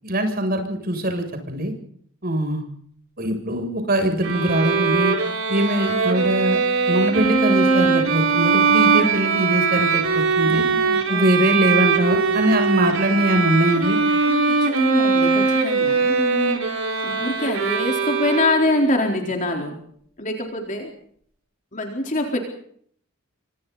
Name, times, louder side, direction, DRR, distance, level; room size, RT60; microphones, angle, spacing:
voice 1, 0.0-1.7 2.2-2.6 3.2-5.1 5.5-6.6 6.9-10.0 10.4-10.7 11.1-14.0, right 1 dB, 45° right, 5 dB, 7.6 m, -22 dB
Bowed string instrument, 4.2-18.9, right 4 dB, 85° right, 5.0 m, -21 dB
voice 2, 10.4-11.2 14.2-16.6 17.0-19.7 20.2-20.9 21.7-22.4, left 1 dB, 40° left, 2 dB, 4.1 m, -25 dB
29.0 x 26.0 x 4.2 m, 0.62 s
head